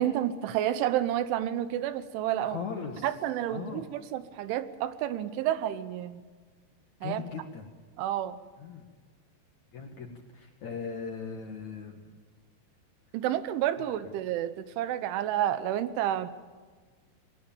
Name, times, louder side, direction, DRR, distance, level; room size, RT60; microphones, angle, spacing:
voice 1, 0.0-2.6 3.0-6.2 7.0-7.2 8.0-8.4 13.1-16.3, right 11 dB, 85° right, 13 dB, 3.4 m, -30 dB
voice 2, 2.4-3.1 3.5-3.8 7.0-7.6 8.6-8.8 9.7-12.1 13.8-13.9, left 6 dB, 55° left, 3 dB, 2.3 m, -39 dB
21.0 x 20.0 x 7.2 m, 1.5 s
omnidirectional pair, 5.4 m